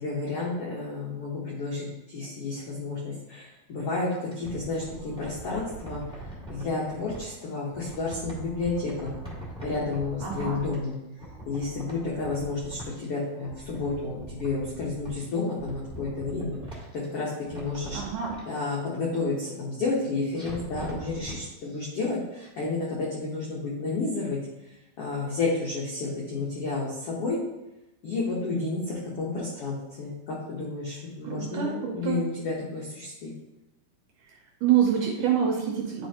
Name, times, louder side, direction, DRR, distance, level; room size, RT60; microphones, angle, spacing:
voice 1, 0.0-9.1 9.6-11.0 11.5-16.6 16.9-18.0 18.5-24.4 25.0-27.4 28.0-33.3, left 3 dB, 80° left, -5 dB, 1.3 m, -31 dB
sound 1, 4.1-7.2 7.7-10.9 11.2-13.0 13.3-15.2 15.6-17.1 17.4-18.4 20.3-21.4 21.7-21.8, right 2 dB, 5° right, 0.7 m, -42 dB
voice 2, 10.2-10.6 17.9-18.4 31.2-32.2 34.3-36.1, right 8 dB, 75° right, -1 dB, 2.0 m, -26 dB
9.9 x 4.4 x 2.9 m, 0.96 s
omnidirectional pair, 4.4 m